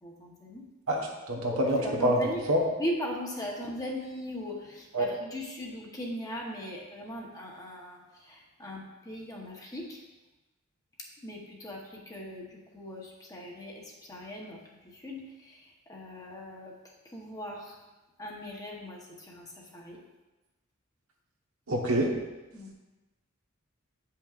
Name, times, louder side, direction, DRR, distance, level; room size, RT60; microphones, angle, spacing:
voice 1, 0.0-0.6 1.5-2.4 2.8-10.0 11.2-16.7 17.0-17.8 18.2-20.0 22.5-22.7, equal, 15° left, -2 dB, 1.0 m, -39 dB
voice 2, 0.9-2.2 2.5-2.6 4.9-5.1 21.7-22.1, right 1 dB, 80° right, -1 dB, 1.2 m, -26 dB
8.7 x 5.7 x 2.5 m, 1.1 s
head